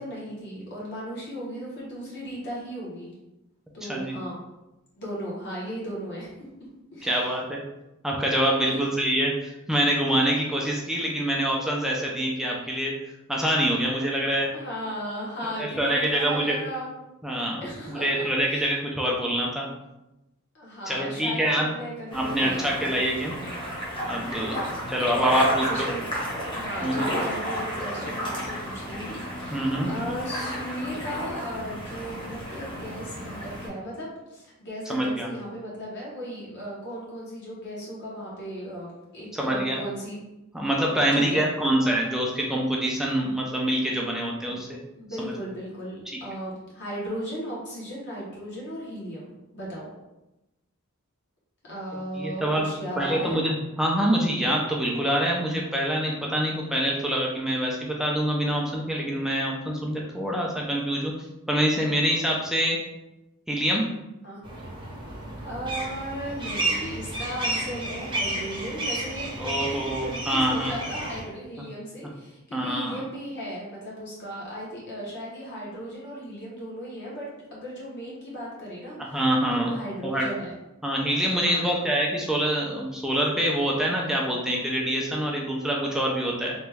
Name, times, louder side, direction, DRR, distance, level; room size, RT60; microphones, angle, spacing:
voice 1, 0.0-3.1 3.7-4.4 5.0-6.3 6.9-7.3 8.7-8.8 14.5-16.9 17.6-18.7 20.5-23.0 24.4-24.8 25.4-26.1 26.4-40.2 41.1-41.4 44.4-44.6 45.0-49.9 51.7-53.4 64.2-64.4 65.4-79.2 79.5-80.5 81.4-81.8, equal, 55° left, -5 dB, 1.0 m, -36 dB
voice 2, 7.0-7.6 8.0-12.9 13.3-14.5 15.6-16.6 17.2-19.7 20.9-21.7 22.1-23.4 24.1-24.6 24.9-25.9 26.8-27.1 29.5-29.9 34.9-35.3 39.3-39.8 40.5-44.7 45.2-45.3 52.2-52.7 53.0-61.1 61.5-62.8 63.5-63.9 69.4-70.7 72.5-73.0 79.0-79.7 80.0-80.3 80.8-86.5, right 1 dB, ahead, -2 dB, 0.3 m, -25 dB
sound 1, 22.1-33.7, equal, 25° left, 0.9 m, -32 dB
sound 2, 64.4-71.2, right 2 dB, 25° right, 0.7 m, -32 dB
3.0 x 2.2 x 3.3 m, 0.96 s
head